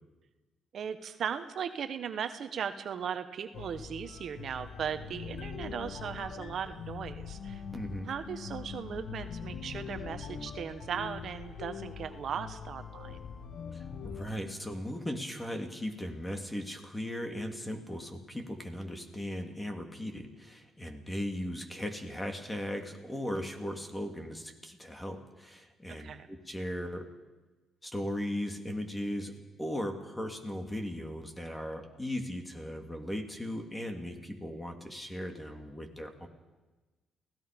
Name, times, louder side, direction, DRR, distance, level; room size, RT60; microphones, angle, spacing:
voice 1, 0.7-7.6 8.0-13.2 25.9-26.3, right 7 dB, 60° right, 9 dB, 1.2 m, -38 dB
sound 1, 3.5-14.3, left 6 dB, 60° left, 1.8 m, -42 dB
voice 2, 7.7-8.1 13.7-27.1 27.8-29.3 29.6-36.3, equal, 15° left, 4 dB, 3.0 m, -37 dB
29.0 x 17.5 x 5.3 m, 1.2 s
cardioid pair, 90°, 0 cm